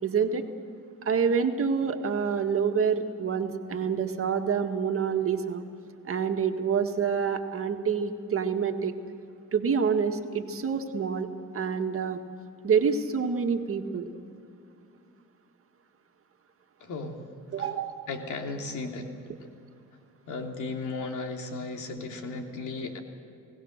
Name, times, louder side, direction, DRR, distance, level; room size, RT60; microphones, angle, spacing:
voice 1, 0.0-0.5 1.0-5.7 6.0-8.9 9.5-11.3 11.5-12.2 12.6-14.1 17.5-17.9, right 6 dB, 45° right, 5 dB, 1.9 m, -27 dB
voice 2, 16.8-17.2 17.6-17.7 18.1-19.2 20.3-23.0, left 3 dB, 80° left, 3 dB, 2.9 m, -35 dB
29.5 x 18.0 x 6.6 m, 2.6 s
cardioid pair, 90°, 30 cm